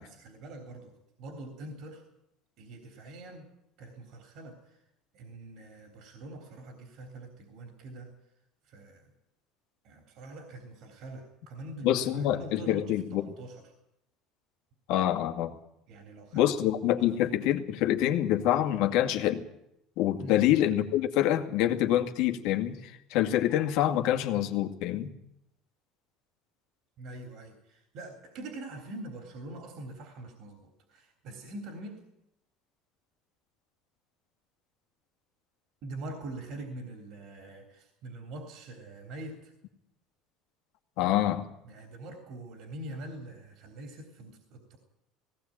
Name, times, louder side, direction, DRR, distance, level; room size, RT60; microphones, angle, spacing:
voice 1, 0.0-2.0 2.6-3.5 3.8-4.8 5.1-8.1 8.6-9.1 9.8-13.7 15.9-16.4 17.0-17.1 20.2-20.4 27.0-32.0 35.8-39.5 41.0-41.2 41.7-44.8, right 2 dB, 55° right, 5 dB, 3.5 m, -44 dB
voice 2, 11.8-13.3 14.9-15.5 16.3-19.4 20.0-25.1 41.0-41.4, left 12 dB, 70° left, 5 dB, 2.2 m, -26 dB
18.5 x 17.5 x 8.8 m, 0.80 s
cardioid pair, 150°, 0 cm